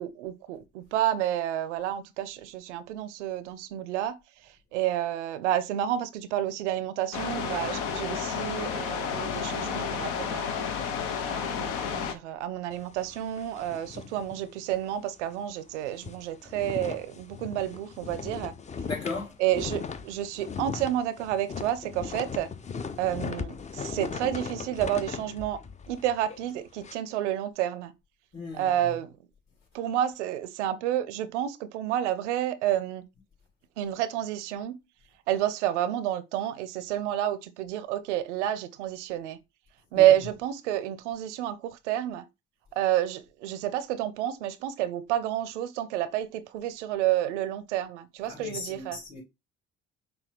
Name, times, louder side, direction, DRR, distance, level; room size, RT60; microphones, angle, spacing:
voice 1, 0.0-4.2 4.7-10.7 11.3-18.5 19.4-22.5 23.0-25.6 25.9-27.9 28.5-29.1 29.7-33.0 33.8-34.8 35.3-39.4 39.9-42.3 42.8-49.0, right 12 dB, 85° right, 0.5 m, -29 dB
sound 1, 7.1-12.1, left 7 dB, 80° left, 0.7 m, -31 dB
sound 2, 12.7-15.0 15.3-15.4 15.8-26.9, left 6 dB, 20° left, 0.4 m, -38 dB
voice 2, 18.8-19.3 28.3-28.9 39.9-40.1 48.3-49.2, left 4 dB, 50° left, 2.7 m, -37 dB
5.9 x 2.2 x 3.3 m
hypercardioid pair, 50°, 34 cm